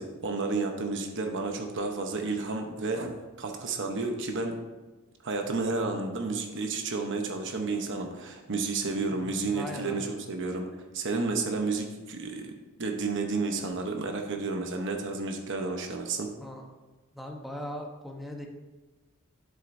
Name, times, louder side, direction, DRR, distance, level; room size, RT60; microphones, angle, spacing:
voice 1, 0.0-4.6 5.2-10.7 10.9-12.5 12.8-16.3, right 3 dB, 60° right, 4 dB, 1.0 m, -31 dB
voice 2, 9.1-10.1 16.4-16.7 17.1-18.5, equal, ahead, 1 dB, 1.0 m, -40 dB
10.5 x 7.6 x 2.7 m, 1.2 s
head